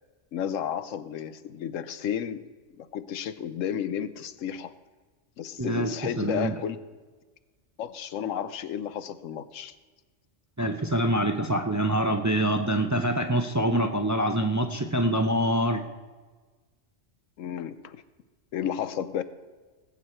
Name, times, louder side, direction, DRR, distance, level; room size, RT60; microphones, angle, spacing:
voice 1, 0.3-2.4 2.8-4.7 5.4-6.8 7.8-9.8 17.4-18.0 18.5-19.2, left 9 dB, 90° left, 13 dB, 1.1 m, -32 dB
voice 2, 5.6-5.9 6.2-6.6 10.6-15.8, right 1 dB, 20° right, 5 dB, 0.5 m, -25 dB
19.0 x 8.2 x 4.4 m, 1.3 s
omnidirectional pair, 1.3 m